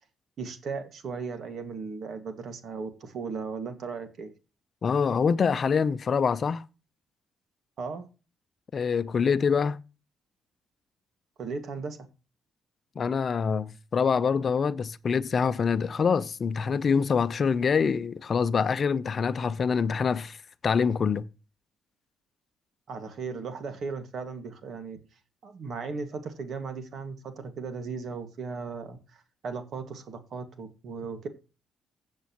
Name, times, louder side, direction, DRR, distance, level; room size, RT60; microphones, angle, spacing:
voice 1, 0.4-4.3 7.8-8.1 11.4-12.0 22.9-25.0 25.4-31.3, right 4 dB, 60° right, 1.9 m, -36 dB
voice 2, 4.8-6.6 8.7-9.8 13.0-20.4 20.6-21.3, left 6 dB, 45° left, 0.6 m, -25 dB
15.5 x 7.5 x 3.0 m
cardioid pair, 90°, 0 cm